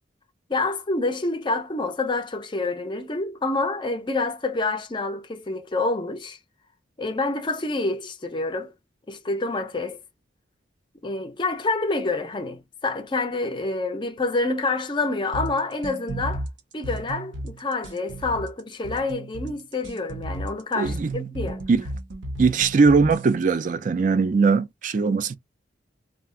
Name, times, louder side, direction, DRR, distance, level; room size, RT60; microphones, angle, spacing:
voice 1, 0.5-6.4 7.0-8.7 9.1-10.0 11.0-16.5 16.7-21.6, left 3 dB, 25° left, 0.5 m, -27 dB
sound 1, 15.3-23.3, right 1 dB, 75° right, 0.7 m, -34 dB
voice 2, 20.7-21.1 21.7-21.8 22.4-25.4, right 4 dB, 45° right, 0.3 m, -20 dB
2.4 x 2.0 x 3.6 m
head